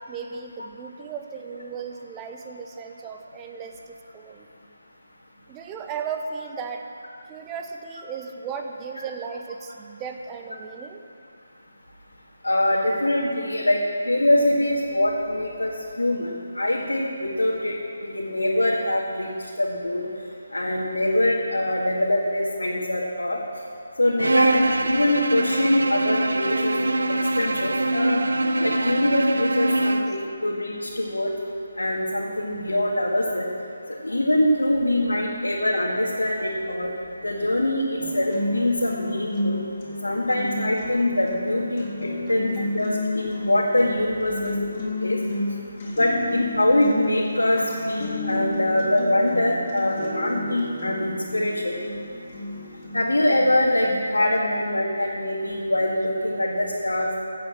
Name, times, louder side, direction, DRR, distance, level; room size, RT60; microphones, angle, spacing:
voice 1, 0.1-4.5 5.5-6.8 7.3-11.0 30.1-30.2 42.6-42.7, right 6 dB, 15° right, 4 dB, 1.0 m, -36 dB
voice 2, 12.4-13.8 14.1-15.7 16.0-17.7 18.0-19.3 19.6-20.1 20.5-23.4 24.0-26.7 27.1-28.3 28.6-31.3 31.8-33.5 34.0-36.9 37.2-39.6 40.0-44.5 45.0-45.2 45.9-51.8 52.9-57.1, left 1 dB, 80° left, -4 dB, 2.1 m, -23 dB
Bowed string instrument, 24.2-30.2, right 2 dB, 65° right, 1.0 m, -23 dB
sound 1, 38.0-54.0, left 2 dB, 30° left, 3.3 m, -31 dB
15.5 x 8.6 x 7.4 m, 2.5 s
figure-of-eight pair, 150°, 0 cm